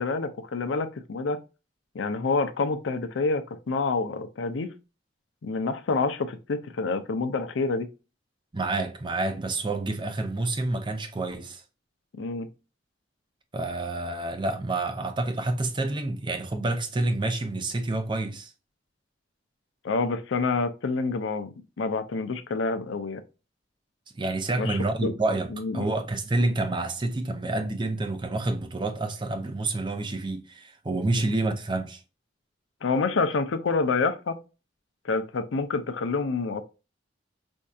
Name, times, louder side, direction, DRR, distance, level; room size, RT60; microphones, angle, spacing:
voice 1, 0.0-1.4 1.9-4.7 5.4-7.9 12.2-12.5 19.8-23.2 24.6-25.1 25.5-25.9 31.1-31.3 32.8-34.4 35.0-36.6, left 4 dB, 85° left, 0.5 m, -28 dB
voice 2, 8.5-11.6 13.5-18.5 24.2-32.0, right 2 dB, 25° right, 0.5 m, -28 dB
4.4 x 2.7 x 2.3 m
head